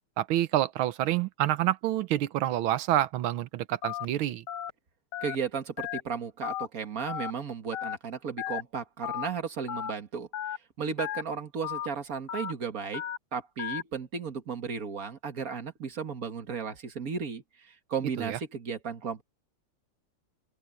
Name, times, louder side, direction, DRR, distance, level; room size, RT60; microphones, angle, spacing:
voice 1, 0.2-4.4 18.2-18.4, right 13 dB, 75° right, 1.6 m, -28 dB
Telephone, 3.8-4.1 4.5-4.7 5.1-5.4 5.8-6.0 6.4-6.7 7.1-7.3 7.7-8.0 8.4-8.6 9.0-9.3 9.7-9.9 10.3-10.6 11.0-11.2 11.6-11.9 12.3-12.5 12.9-13.2 13.6-13.8, left 11 dB, 85° left, 1.8 m, -34 dB
voice 2, 5.2-13.0 13.3-19.2, right 6 dB, 45° right, 2.0 m, -35 dB
open air
omnidirectional pair, 2.4 m